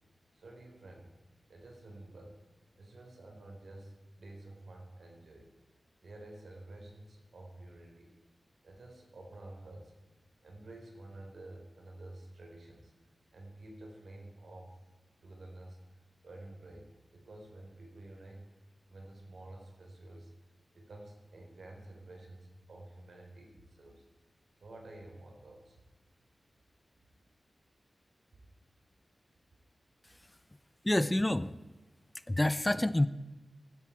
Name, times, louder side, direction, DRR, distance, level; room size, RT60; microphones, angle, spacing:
voice 1, 0.3-1.1 1.5-2.4 2.8-5.6 6.0-8.1 8.6-9.9 10.4-12.9 13.3-14.8 15.2-15.8 16.2-18.5 18.9-20.3 20.7-24.0 24.6-25.8, right 2 dB, 75° right, 1 dB, 3.8 m, -50 dB
voice 2, 30.8-31.5 32.3-33.1, left 1 dB, 15° left, 15 dB, 0.4 m, -27 dB
16.0 x 12.5 x 4.4 m, 1.2 s
wide cardioid pair, 115°, 0 cm